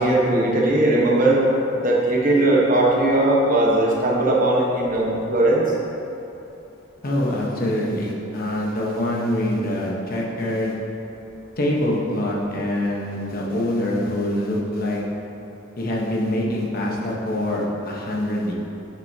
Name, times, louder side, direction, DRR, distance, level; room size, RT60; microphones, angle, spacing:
voice 1, 0.0-1.4 1.7-5.6, right 1 dB, 45° right, -3 dB, 1.1 m, -19 dB
voice 2, 7.0-10.7 11.6-15.0 15.8-18.5, left 1 dB, 50° left, -3 dB, 1.0 m, -24 dB
7.7 x 6.7 x 2.8 m, 2.9 s
head